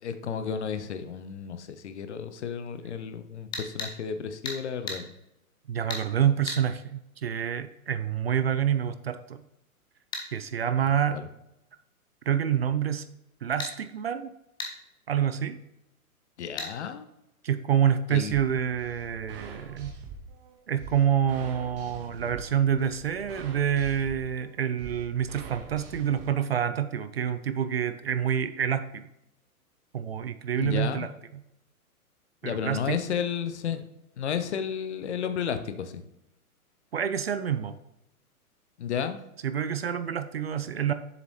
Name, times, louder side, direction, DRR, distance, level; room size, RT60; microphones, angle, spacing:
voice 1, 0.0-5.1 11.1-11.2 16.4-17.0 18.1-18.4 30.6-31.1 32.4-33.9 34.2-36.0 38.8-39.2, left 7 dB, 50° left, 9 dB, 0.8 m, -32 dB
sound 1, 3.5-3.9 4.5-4.6 4.9-5.0 5.9-6.0 6.5-6.6 10.1-10.3 13.6-13.7 14.6-14.7 16.6-16.7, left 3 dB, 10° left, 0.7 m, -34 dB
voice 2, 5.7-9.4 10.3-11.2 12.3-13.0 13.4-14.3 15.1-15.6 17.4-20.0 20.7-29.1 29.9-31.4 32.4-33.0 36.9-37.8 39.4-40.9, right 9 dB, 45° right, 12 dB, 0.4 m, -27 dB
sound 2, 18.3-26.3, right 5 dB, 25° right, 1.6 m, -44 dB
7.1 x 6.8 x 3.2 m, 0.85 s
figure-of-eight pair, 115°, 44 cm